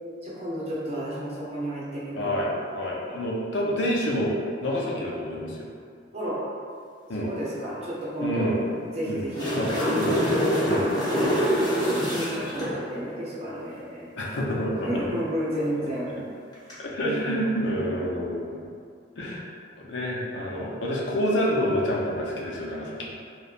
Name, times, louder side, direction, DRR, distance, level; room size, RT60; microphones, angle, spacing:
voice 1, 0.2-2.4 2.8-2.9 4.9-5.1 6.1-6.4 7.2-8.5 9.0-10.0 11.0-11.5 11.9-14.1 14.8-16.2 17.0-17.6, equal, 35° right, -7 dB, 0.6 m, -32 dB
voice 2, 2.2-5.7 7.1-7.3 8.2-8.7 9.1-11.0 14.2-14.9 16.8-18.5 19.2-19.4 19.8-23.2, equal, 90° left, -3 dB, 0.5 m, -28 dB
sound 1, 9.1-12.7 16.5-16.7, equal, 25° left, 0.6 m, -24 dB
2.9 x 2.1 x 2.4 m, 2.2 s
head